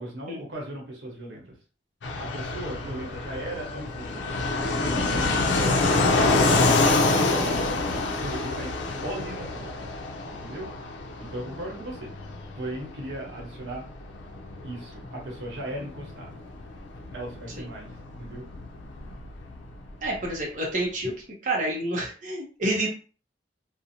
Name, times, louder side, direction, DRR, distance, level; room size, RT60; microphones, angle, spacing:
voice 1, 0.0-1.5 2.2-4.4 4.7-6.3 7.0-9.7 10.4-10.7 11.2-12.1 12.6-13.8 14.6-16.4 17.1-18.5 22.6-22.7, right 1 dB, 80° right, -2 dB, 1.0 m, -37 dB
Fixed-wing aircraft airplane, 2.0-20.4, left 3 dB, 85° left, 0.4 m, -27 dB
voice 2, 20.0-21.1 21.4-22.9, right 1 dB, 45° right, -3 dB, 0.6 m, -28 dB
2.5 x 2.0 x 2.7 m, 0.37 s
head